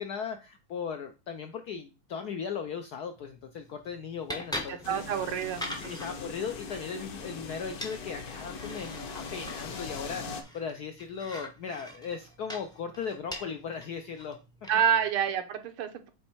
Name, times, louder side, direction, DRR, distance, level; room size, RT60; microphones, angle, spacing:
voice 1, 0.0-5.0 5.8-14.4, left 6 dB, 75° left, 6 dB, 0.9 m, -37 dB
sound 1, 3.1-15.1, left 1 dB, 5° left, 0.4 m, -44 dB
voice 2, 4.7-6.0 14.7-16.1, right 8 dB, 85° right, 7 dB, 1.8 m, -28 dB
sound 2, 4.8-10.4, left 4 dB, 55° left, 1.1 m, -41 dB
8.4 x 3.2 x 4.5 m, 0.29 s
omnidirectional pair, 2.3 m